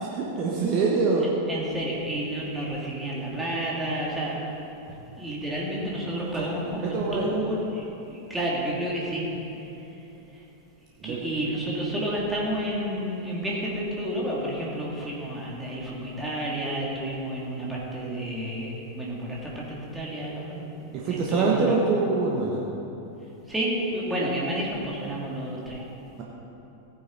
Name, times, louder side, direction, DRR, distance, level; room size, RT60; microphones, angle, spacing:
voice 1, 0.0-1.3 6.4-6.5 6.8-7.3 11.0-11.2 20.9-22.6, right 4 dB, 40° right, -3 dB, 1.3 m, -24 dB
voice 2, 1.5-4.4 4.9-9.3 10.3-10.4 11.0-21.9 23.5-25.8, right 1 dB, 10° right, -5 dB, 2.8 m, -30 dB
15.0 x 9.5 x 4.1 m, 2.9 s
figure-of-eight pair, 90°, 0 cm